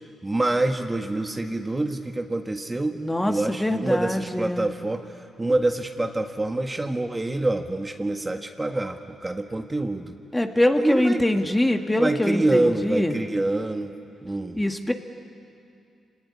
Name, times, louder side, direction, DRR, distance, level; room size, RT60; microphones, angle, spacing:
voice 1, 0.2-5.0 5.4-10.1 10.8-11.5 12.0-13.9 14.2-14.6, right 2 dB, 20° right, 5 dB, 1.6 m, -26 dB
voice 2, 3.0-4.7 10.3-13.1 14.5-14.9, left 1 dB, 15° left, 5 dB, 2.1 m, -23 dB
27.0 x 18.5 x 9.9 m, 2.5 s
supercardioid pair, 55°, 0 cm